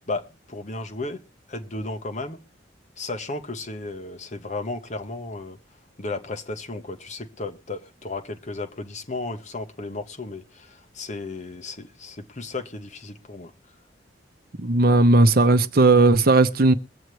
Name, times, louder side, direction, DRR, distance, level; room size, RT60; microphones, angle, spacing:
voice 1, 0.1-1.2 1.5-2.4 3.0-5.6 6.0-13.5, left 2 dB, 40° left, 1.0 m, -34 dB
voice 2, 14.6-16.7, right 2 dB, 55° right, 0.8 m, -16 dB
23.0 x 8.0 x 3.1 m
head